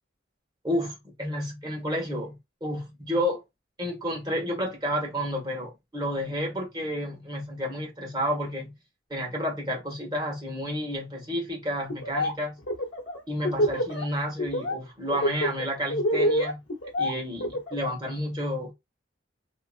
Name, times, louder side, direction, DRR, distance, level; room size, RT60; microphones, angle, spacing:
voice 1, 0.6-3.4 3.8-8.7 9.1-12.6 13.3-16.6 17.0-18.7, equal, 25° right, 1.4 m, -31 dB
Laughter, 11.9-12.3 12.6-14.0 14.4-14.8 15.1-17.9, equal, 70° left, 1.0 m, -26 dB
2.9 x 2.4 x 2.4 m
head